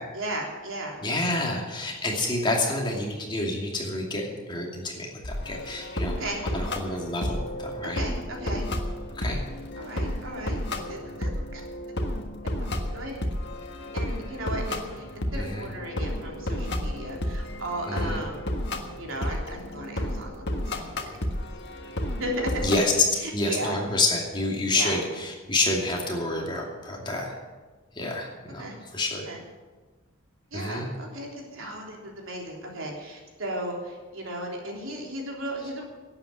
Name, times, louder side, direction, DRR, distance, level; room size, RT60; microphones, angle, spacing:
voice 1, 0.1-1.4 6.2-6.4 7.9-8.7 9.8-11.6 12.9-13.2 13.9-18.5 19.0-21.2 22.2-22.6 23.2-23.8 24.7-25.0 28.6-28.8 29.2-29.4 30.5-35.9, right 1 dB, 75° right, 0 dB, 3.5 m, -35 dB
voice 2, 1.0-8.0 9.1-9.4 15.3-15.7 17.9-18.2 22.6-22.9 23.3-27.4 27.9-29.3 30.5-30.9, left 2 dB, 20° left, -1 dB, 2.5 m, -29 dB
sound 1, 5.2-22.8, left 1 dB, 55° left, 1.6 m, -32 dB
11.5 x 8.9 x 9.7 m, 1.3 s
head